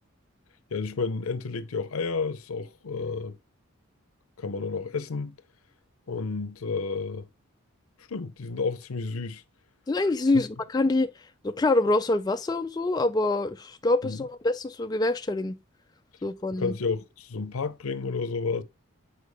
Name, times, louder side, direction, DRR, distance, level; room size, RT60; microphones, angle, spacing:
voice 1, 0.7-3.3 4.4-5.3 6.1-7.3 8.1-9.4 10.3-10.4 14.0-14.2 16.5-18.6, left 4 dB, 85° left, 0.7 m, -31 dB
voice 2, 9.9-11.1 11.4-15.6 16.2-16.7, left 2 dB, 20° left, 0.3 m, -25 dB
6.6 x 4.6 x 3.4 m
head